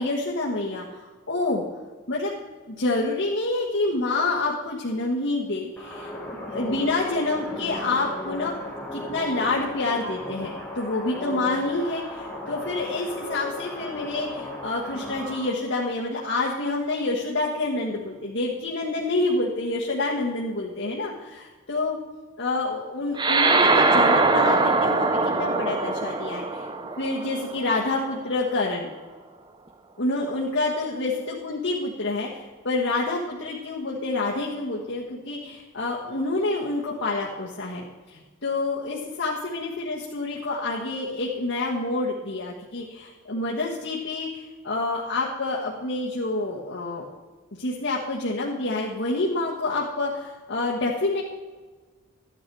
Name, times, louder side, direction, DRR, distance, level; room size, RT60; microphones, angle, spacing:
voice 1, 0.0-1.6 2.1-2.3 2.7-8.5 8.9-21.4 21.7-22.0 22.4-26.7 27.0-28.9 30.0-47.1 47.6-51.2, left 2 dB, 65° left, -5 dB, 1.4 m, -28 dB
sound 1, 5.8-15.5, left 1 dB, 10° left, 1.6 m, -35 dB
sound 2, 23.2-27.9, right 3 dB, 20° right, 0.5 m, -22 dB
12.5 x 9.8 x 4.7 m, 1.3 s
head